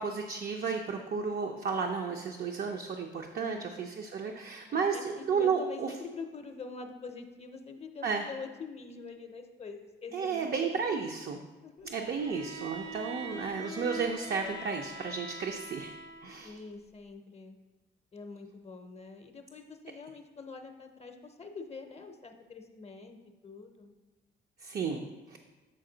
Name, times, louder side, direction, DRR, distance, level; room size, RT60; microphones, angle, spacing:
voice 1, 0.0-5.9 8.0-8.2 10.1-11.4 11.9-15.9 16.2-16.5 24.6-25.4, right 5 dB, 50° right, 3 dB, 0.5 m, -33 dB
voice 2, 3.3-3.7 4.7-11.1 11.6-11.9 16.4-17.6 18.1-23.2 23.4-23.9, left 4 dB, 30° left, 5 dB, 0.6 m, -45 dB
Bowed string instrument, 12.2-16.5, right 1 dB, 70° right, 0.9 m, -42 dB
7.6 x 4.2 x 3.8 m, 1.2 s
cardioid pair, 90°, 20 cm